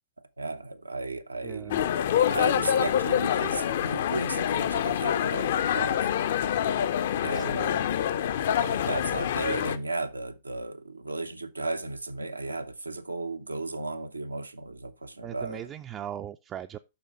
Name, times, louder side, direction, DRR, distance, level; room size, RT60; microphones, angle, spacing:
voice 1, 0.4-1.7 2.3-6.1 7.2-7.7 8.6-15.7, right 2 dB, 90° right, 0.7 m, -35 dB
voice 2, 1.4-1.8 7.2-8.0 15.2-16.8, right 10 dB, 25° right, 0.4 m, -39 dB
sound 1, 1.7-9.8, left 9 dB, 60° left, 0.6 m, -26 dB
7.0 x 5.5 x 4.3 m
figure-of-eight pair, 105°, 0 cm